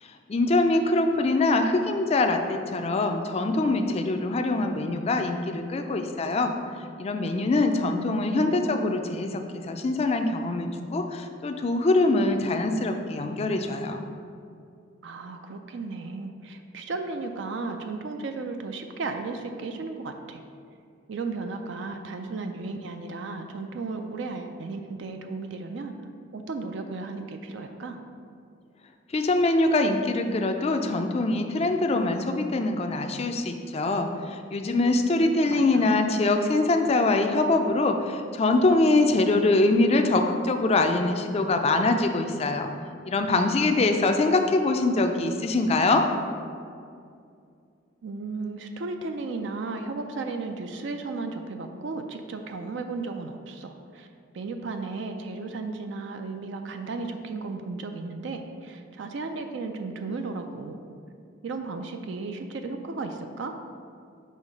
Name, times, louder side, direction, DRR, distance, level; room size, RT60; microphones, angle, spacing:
voice 1, 0.0-6.5 7.0-14.1 29.1-42.7 43.1-46.0, left 2 dB, 30° left, 6 dB, 0.4 m, -24 dB
voice 2, 7.8-9.0 15.0-20.4 21.1-25.9 26.3-28.0 35.2-36.3 48.0-54.1 54.3-60.8 61.4-63.6, right 3 dB, 60° right, 6 dB, 0.4 m, -35 dB
6.4 x 3.2 x 5.2 m, 2.4 s
head